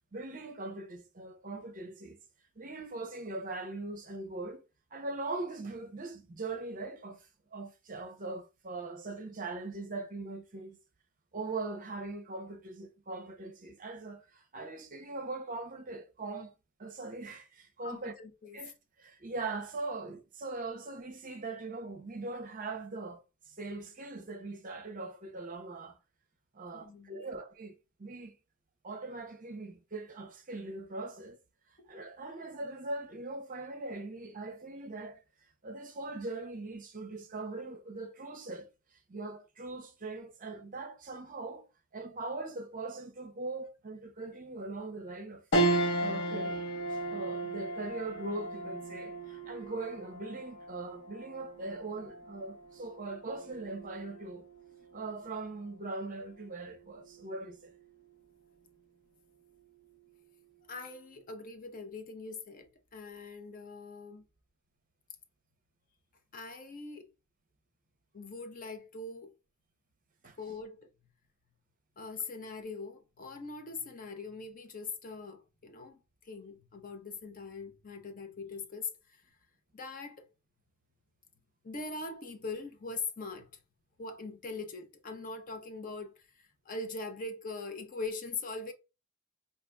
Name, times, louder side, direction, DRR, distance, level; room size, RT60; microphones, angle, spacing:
voice 1, 0.1-2.2 2.6-4.6 4.9-10.8 11.3-16.5 16.8-18.1 18.5-18.7 19.0-23.2 23.5-26.0 26.5-28.4 28.8-31.4 31.9-35.2 35.6-38.7 39.1-41.7 41.9-45.4 46.0-46.7 47.1-54.5 54.9-57.7 70.2-70.4, right 3 dB, 40° right, 0.7 m, -41 dB
voice 2, 17.8-18.6 26.7-27.2 31.8-31.9 60.7-64.2 66.3-67.1 68.1-69.3 70.4-70.9 72.0-79.2 79.7-80.3 81.6-83.5 84.0-88.7, left 3 dB, 40° left, 0.7 m, -42 dB
sound 1, 45.5-55.1 55.6-55.7 57.0-57.5, right 2 dB, 55° left, 1.1 m, -35 dB
5.0 x 2.8 x 2.2 m
head